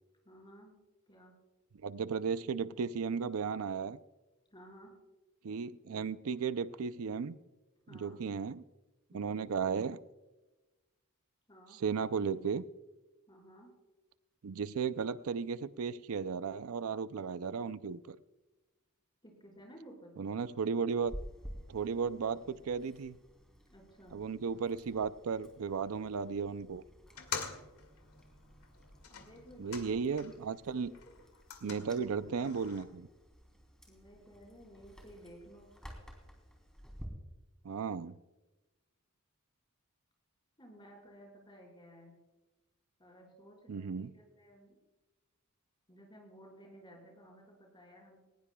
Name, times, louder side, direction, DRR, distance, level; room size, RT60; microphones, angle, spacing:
voice 1, 0.2-0.8 1.1-1.4 4.5-4.9 7.9-8.2 9.1-9.5 11.5-11.8 13.3-13.7 19.2-20.1 23.7-24.2 29.1-30.1 30.7-31.2 31.6-32.5 33.8-35.7 40.6-42.2 43.0-44.7 45.9-48.3, equal, 20° left, 4.9 m, -55 dB
voice 2, 1.8-4.0 5.4-7.4 7.9-8.6 9.1-10.0 11.8-12.6 14.4-18.2 20.2-21.2 21.7-23.2 24.1-26.8 29.6-30.9 31.6-33.1 37.6-38.2 43.7-44.1, right 5 dB, 75° right, 0.5 m, -35 dB
Chewing mastication, 21.0-37.1, equal, 5° left, 3.2 m, -53 dB
sound 1, 27.1-30.5 30.8-32.8, left 6 dB, 90° left, 2.3 m, -46 dB
20.5 x 20.0 x 2.3 m
head